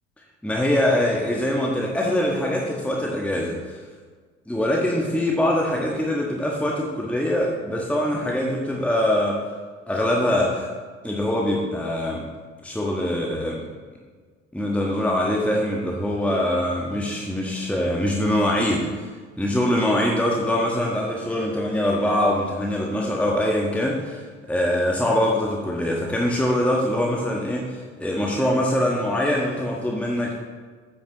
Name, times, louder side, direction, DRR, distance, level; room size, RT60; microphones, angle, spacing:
voice 1, 0.4-3.8 4.5-9.4 9.9-10.7 11.0-12.2 12.6-13.6 14.5-18.9 19.4-30.3, left 1 dB, 5° left, -2 dB, 1.4 m, -23 dB
13.0 x 9.0 x 3.0 m, 1.5 s
figure-of-eight pair, 60°, 37 cm